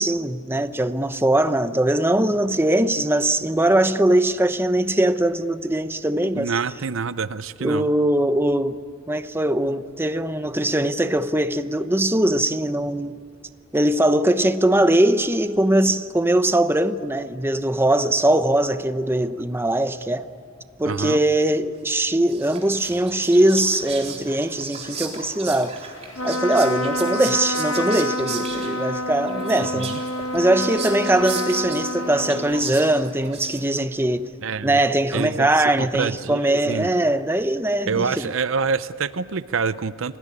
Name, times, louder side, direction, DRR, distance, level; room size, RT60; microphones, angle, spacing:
voice 1, 0.0-6.5 7.6-8.8 9.1-13.1 13.7-20.3 20.8-25.8 26.2-30.0 30.3-34.3 34.6-38.3, right 1 dB, 10° right, 0.9 m, -21 dB
voice 2, 6.3-7.9 20.8-21.2 29.6-30.0 34.4-34.8 35.1-36.9 37.9-40.2, right 5 dB, 70° right, 0.7 m, -26 dB
Whispering, 22.0-33.9, right 5 dB, 35° right, 4.0 m, -36 dB
Trumpet, 26.1-33.0, left 1 dB, 80° left, 1.1 m, -28 dB
29.0 x 18.5 x 9.9 m
head